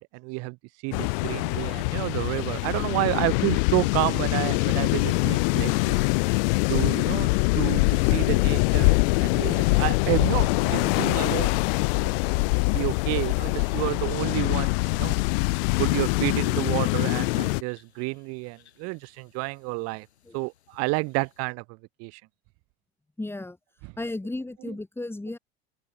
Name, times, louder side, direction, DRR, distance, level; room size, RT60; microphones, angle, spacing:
voice 1, 0.0-6.0 6.7-7.3 7.5-11.5 12.0-12.1 12.4-15.2 15.8-20.1 20.3-21.6 22.0-22.2, right 29 dB, 50° right, 0.6 m, -30 dB
sound 1, 0.9-17.6, left 30 dB, 60° left, 0.4 m, -24 dB
sound 2, 4.6-21.5, left 10 dB, 90° left, 3.3 m, -59 dB
voice 2, 23.2-23.6 24.0-25.4, left 2 dB, 5° left, 2.9 m, -34 dB
open air
hypercardioid pair, 90°, 32 cm